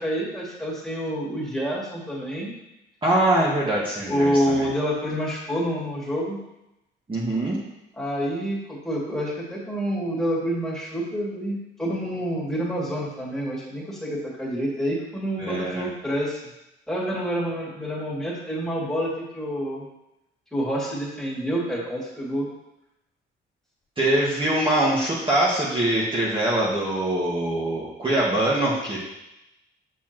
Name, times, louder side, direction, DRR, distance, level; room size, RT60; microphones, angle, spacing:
voice 1, 0.0-2.5 4.1-6.4 8.0-16.4 16.9-19.9 20.5-22.5, equal, ahead, -5 dB, 2.7 m, -27 dB
voice 2, 3.0-4.7 7.1-7.6 15.4-15.9 24.0-29.0, right 1 dB, 25° right, -6 dB, 1.8 m, -23 dB
7.2 x 6.9 x 3.1 m, 0.91 s
cardioid pair, 90°, 20 cm